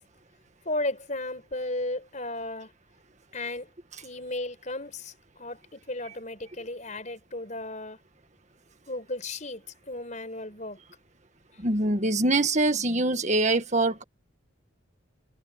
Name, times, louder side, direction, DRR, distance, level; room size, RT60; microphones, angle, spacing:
voice 1, 0.7-2.7 3.3-3.7 4.0-8.0 8.9-10.8, left 2 dB, 35° left, 5.2 m, -34 dB
voice 2, 11.6-14.0, right 2 dB, 35° right, 1.9 m, -24 dB
head